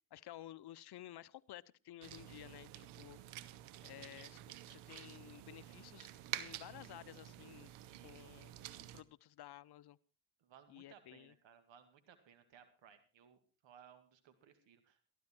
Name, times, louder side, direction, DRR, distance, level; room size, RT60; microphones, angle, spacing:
voice 1, 0.1-3.2 3.8-7.7 8.0-8.5 8.9-10.0 10.7-11.3, left 14 dB, 55° left, 17 dB, 0.8 m, -54 dB
sound 1, 2.0-9.0, right 13 dB, 80° right, 1.1 m, -49 dB
voice 2, 7.8-8.3 10.4-15.0, right 8 dB, 65° right, 9 dB, 2.2 m, -63 dB
14.0 x 12.5 x 4.4 m, 0.36 s
supercardioid pair, 70°, 49 cm